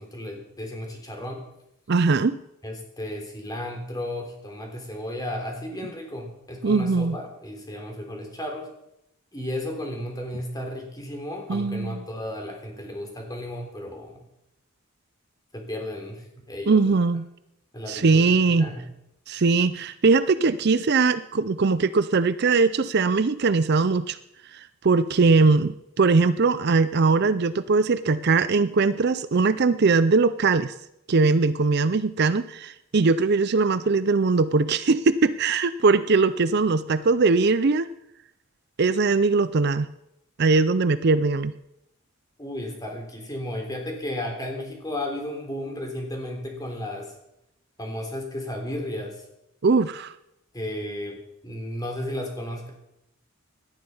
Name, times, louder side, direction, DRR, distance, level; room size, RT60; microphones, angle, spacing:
voice 1, 0.0-1.4 2.6-8.7 9.3-14.2 15.5-17.0 17.7-18.3 18.6-18.9 42.4-47.1 47.8-49.2 50.5-51.2 51.4-52.7, left 1 dB, 20° left, 2 dB, 3.5 m, -34 dB
voice 2, 1.9-2.4 6.6-7.2 11.5-12.0 16.7-17.2 17.9-18.7 19.3-24.2 24.5-30.7 31.1-37.9 38.8-39.9 40.4-41.5 49.6-50.1, right 4 dB, 50° right, 14 dB, 0.5 m, -21 dB
18.0 x 12.0 x 5.5 m, 0.83 s
head